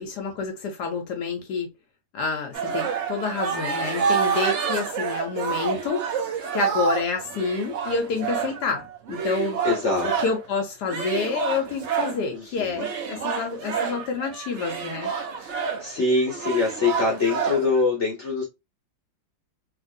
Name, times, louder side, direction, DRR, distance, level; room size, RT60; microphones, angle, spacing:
voice 1, 0.0-1.7 2.1-6.1 6.5-9.6 10.0-15.1, left 4 dB, 80° left, 1.2 m, -28 dB
sound 1, 2.5-10.5 10.9-12.2 12.8-17.8, right 6 dB, 60° right, 0.8 m, -28 dB
voice 2, 9.6-10.1 12.3-12.8 15.4-18.4, left 3 dB, 50° left, 1.1 m, -24 dB
2.9 x 2.9 x 2.6 m
omnidirectional pair, 1.8 m